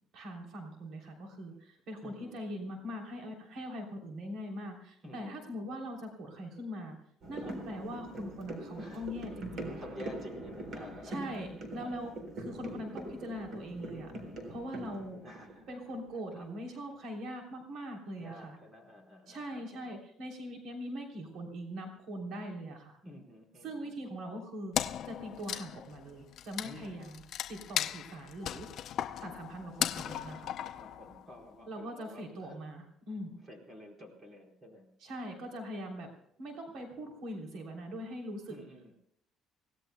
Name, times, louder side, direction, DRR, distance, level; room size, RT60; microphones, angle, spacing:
voice 1, 0.1-7.0 7.3-9.8 11.0-11.5 11.7-14.1 14.5-15.2 15.7-18.6 19.3-23.0 23.6-24.7 25.0-27.2 27.5-28.7 29.2-30.5 31.7-33.4 35.0-36.1 36.4-38.6, equal, 65° right, 2 dB, 3.2 m, -42 dB
voice 2, 2.0-2.4 5.0-5.5 7.4-7.6 8.8-9.3 9.8-11.4 11.8-12.0 15.2-15.8 16.3-16.5 18.2-19.9 23.0-23.9 26.6-27.1 30.7-32.6 33.4-34.9 38.5-38.9, left 1 dB, 25° right, 3 dB, 4.3 m, -51 dB
sound 1, 7.2-16.6 16.9-17.0, right 1 dB, 45° right, 3.9 m, -43 dB
Wood, 24.7-31.5, left 10 dB, 55° left, 0.6 m, -37 dB
27.5 x 17.5 x 2.2 m, 0.73 s
cardioid pair, 140°, 0 cm